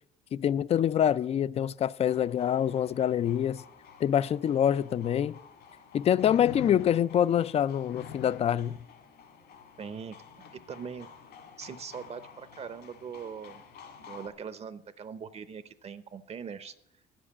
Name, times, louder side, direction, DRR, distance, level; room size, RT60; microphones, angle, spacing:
voice 1, 0.3-3.6 4.0-5.4 5.9-8.8, left 10 dB, 40° left, 0.3 m, -25 dB
sound 1, 2.0-14.3, left 6 dB, 65° left, 2.2 m, -52 dB
sound 2, 4.7-4.8 6.1-7.3 7.8-8.5 10.4-10.6, left 8 dB, 85° left, 0.8 m, -42 dB
voice 2, 9.8-10.2 10.5-11.1 11.6-13.6 14.1-16.7, right 6 dB, 40° right, 0.7 m, -41 dB
9.8 x 7.5 x 8.6 m
cardioid pair, 110°, 17 cm